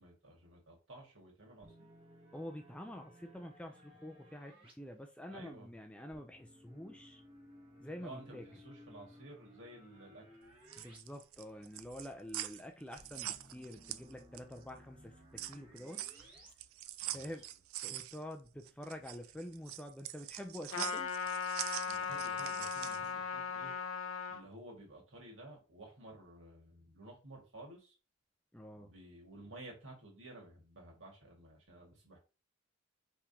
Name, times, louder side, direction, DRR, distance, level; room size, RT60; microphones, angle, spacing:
voice 1, 0.0-1.9 5.3-5.7 8.0-10.2 17.0-17.3 21.8-23.7 24.3-28.0 28.8-32.2, right 1 dB, 65° right, 2.0 m, -53 dB
sound 1, 1.6-4.7 6.1-11.0 11.3-11.4 13.0-16.5, equal, 25° right, 1.4 m, -59 dB
voice 2, 2.3-7.2 7.8-8.4 10.8-16.0 17.1-17.5 17.8-21.1 28.5-28.9, left 1 dB, 5° left, 0.4 m, -47 dB
sound 2, 10.5-14.6 15.0-23.1, right 13 dB, 85° right, 0.4 m, -44 dB
Trumpet, 20.7-24.4, left 6 dB, 85° left, 0.8 m, -38 dB
5.0 x 3.6 x 2.8 m
head